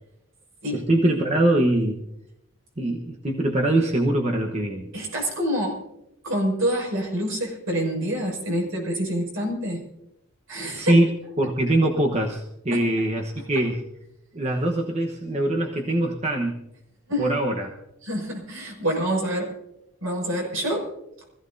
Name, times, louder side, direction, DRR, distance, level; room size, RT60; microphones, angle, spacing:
voice 1, 0.7-2.0 2.8-4.9 10.7-13.8 14.3-16.6 17.2-17.7, right 1 dB, 30° right, 1 dB, 1.1 m, -23 dB
voice 2, 4.9-5.8 6.2-9.8 10.5-11.0 12.7-12.8 13.4-13.5 17.1-17.3 18.0-19.5 20.0-20.9, equal, 75° right, 0 dB, 6.2 m, -27 dB
25.0 x 15.5 x 2.7 m, 0.85 s
head